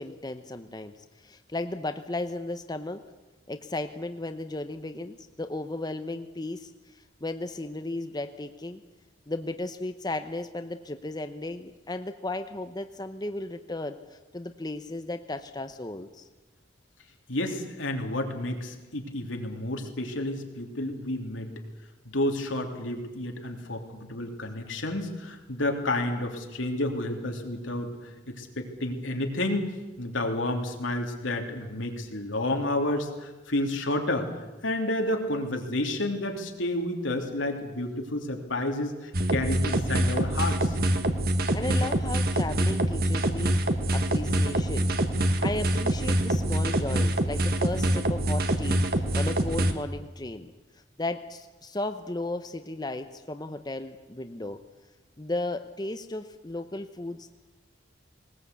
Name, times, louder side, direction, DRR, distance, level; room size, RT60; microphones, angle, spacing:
voice 1, 0.0-3.0 3.5-8.8 9.3-16.3 41.5-44.9 45.4-54.6 55.2-57.3, left 2 dB, 20° left, 8 dB, 0.8 m, -35 dB
voice 2, 17.3-21.5 22.0-29.7 30.0-34.3 34.6-40.8, left 1 dB, 90° left, 3 dB, 3.2 m, -30 dB
sound 1, 39.1-49.7, right 1 dB, 50° right, 1.6 m, -25 dB
20.0 x 19.5 x 8.3 m, 1.2 s
head